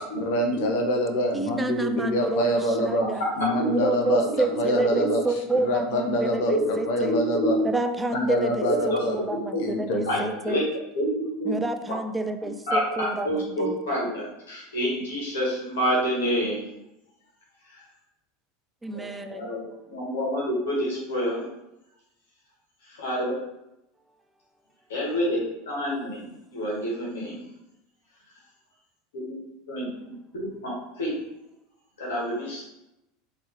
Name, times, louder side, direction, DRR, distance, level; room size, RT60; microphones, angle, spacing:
voice 1, 0.1-3.1 3.4-5.2 5.5-6.5 6.9-7.6 8.1-9.1 9.6-10.2, equal, 65° left, 2 dB, 0.7 m, -25 dB
voice 2, 1.3-3.3 3.7-7.2 7.6-10.6 11.5-13.8 18.8-19.5, right 2 dB, 10° right, 7 dB, 0.3 m, -29 dB
voice 3, 4.7-5.1 6.5-7.6 8.9-9.0 10.1-10.6 10.9-11.5 12.7-16.6 18.9-19.0 19.3-19.6 19.9-21.4 23.0-23.3 24.9-27.4 29.1-29.4 29.7-31.1 32.0-32.7, equal, 80° left, -5 dB, 1.3 m, -28 dB
3.4 x 2.9 x 2.9 m, 0.88 s
hypercardioid pair, 95°, 0 cm